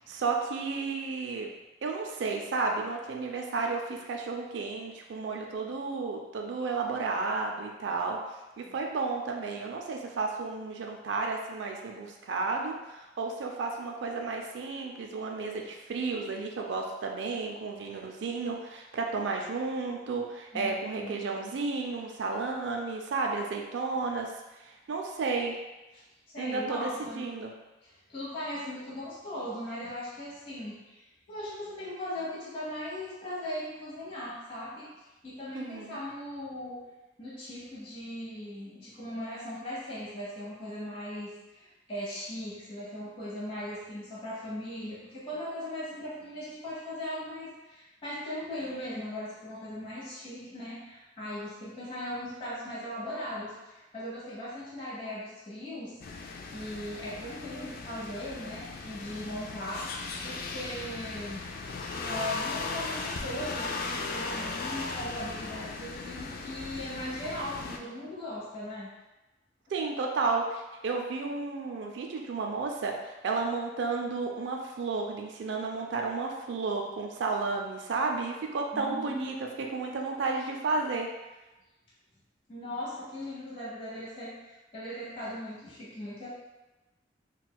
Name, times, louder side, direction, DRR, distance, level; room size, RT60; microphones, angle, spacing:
voice 1, 0.1-1.5 1.8-8.2 8.6-24.3 24.6-25.6 26.4-26.9 27.2-27.5 35.5-36.0 69.7-81.1, right 4 dB, 70° right, 2 dB, 0.4 m, -32 dB
voice 2, 20.5-21.2 25.9-26.0 26.3-27.3 27.8-36.8 37.2-61.4 62.0-68.9 78.7-79.3 82.5-86.3, left 1 dB, 30° left, -9 dB, 1.0 m, -39 dB
sound 1, 56.0-67.8, left 3 dB, 50° left, 0.3 m, -37 dB
4.2 x 2.2 x 2.2 m, 1.1 s
head